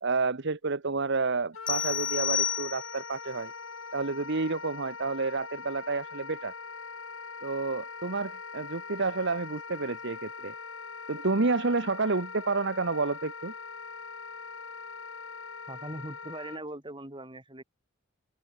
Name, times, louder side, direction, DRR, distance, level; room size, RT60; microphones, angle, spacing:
voice 1, 0.0-3.5 3.9-6.5 7.4-10.5 11.1-13.5, right 3 dB, 60° right, 1.1 m, -30 dB
Wind instrument woodwind instrument, 1.5-16.6, left 5 dB, 75° left, 6.6 m, -42 dB
sound 1, 1.7-3.2, left 8 dB, 25° left, 0.5 m, -30 dB
voice 2, 15.7-17.6, right 1 dB, 25° right, 4.9 m, -40 dB
open air
head